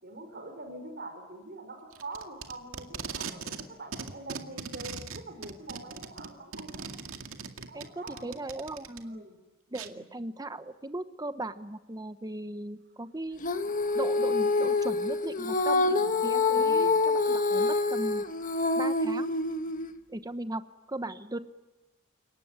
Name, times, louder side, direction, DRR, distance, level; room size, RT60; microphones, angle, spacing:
voice 1, 0.0-6.9 7.7-8.5 9.0-9.4 9.8-10.0 15.8-16.1 16.6-16.9, right 2 dB, 50° right, 6 dB, 5.4 m, -44 dB
Packing tape duct tape, 1.9-3.7 3.9-9.0 9.8-9.9, right 5 dB, 70° right, 2.2 m, -39 dB
voice 2, 7.7-9.2 9.7-13.4 13.9-15.9 16.2-18.2 18.7-19.3 20.1-20.6 20.9-21.4, right 1 dB, 20° right, 11 dB, 1.0 m, -37 dB
Female singing, 13.4-19.9, left 3 dB, 40° left, 1.5 m, -26 dB
29.5 x 18.5 x 9.6 m, 1.1 s
head